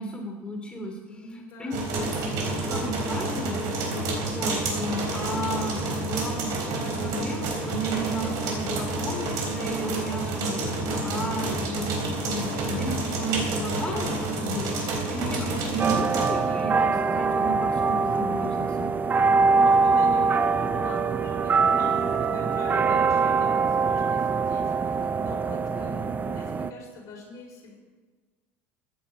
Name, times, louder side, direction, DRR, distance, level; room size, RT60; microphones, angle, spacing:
voice 1, 0.0-1.7 2.7-3.6 4.1-11.9 12.2-18.9, right 1 dB, 15° left, 1 dB, 2.7 m, -33 dB
voice 2, 1.1-2.1 16.4-16.5 19.4-27.7, left 3 dB, 50° left, -1 dB, 4.2 m, -42 dB
sound 1, 1.7-16.3, right 2 dB, 60° right, 3.8 m, -29 dB
sound 2, 15.8-26.7, right 4 dB, 25° right, 0.6 m, -23 dB
15.0 x 10.0 x 4.9 m, 1.4 s
supercardioid pair, 105°, 7 cm